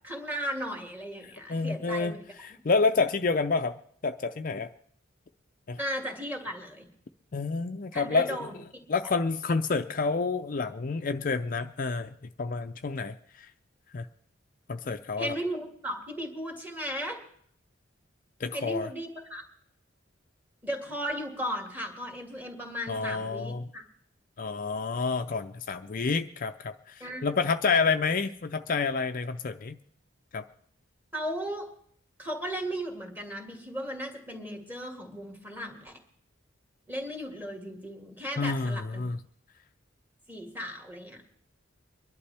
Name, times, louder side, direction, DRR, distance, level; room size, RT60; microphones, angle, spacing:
voice 1, 0.0-2.2 5.8-6.9 7.9-8.5 15.2-17.2 18.5-19.4 20.6-23.8 27.0-27.3 31.1-31.7 32.2-36.0 36.9-39.0 40.3-41.2, equal, 10° right, 2 dB, 2.1 m, -36 dB
voice 2, 1.5-2.1 2.4-3.8 4.0-4.7 5.7-5.8 7.3-8.5 8.9-13.5 13.9-14.1 14.7-15.4 18.4-18.9 22.9-23.6 24.4-29.8 30.3-30.4 38.4-39.2, left 4 dB, 45° left, 7 dB, 0.5 m, -29 dB
24.0 x 11.5 x 3.4 m, 0.63 s
head